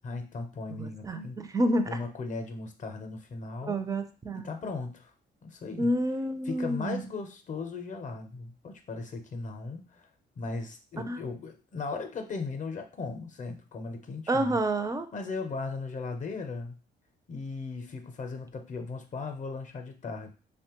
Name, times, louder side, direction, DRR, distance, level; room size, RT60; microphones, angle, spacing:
voice 1, 0.0-1.4 1.9-3.9 4.3-5.1 5.4-5.9 6.4-10.1 10.4-14.6 15.1-16.8 17.3-20.3, left 4 dB, 40° left, 6 dB, 0.5 m, -37 dB
voice 2, 0.7-1.2 1.5-2.0 3.7-4.5 5.8-7.0 11.1-11.2 14.3-15.1, right 1 dB, 15° right, 9 dB, 0.4 m, -28 dB
2.9 x 2.1 x 2.9 m, 0.34 s
cardioid pair, 90°, 20 cm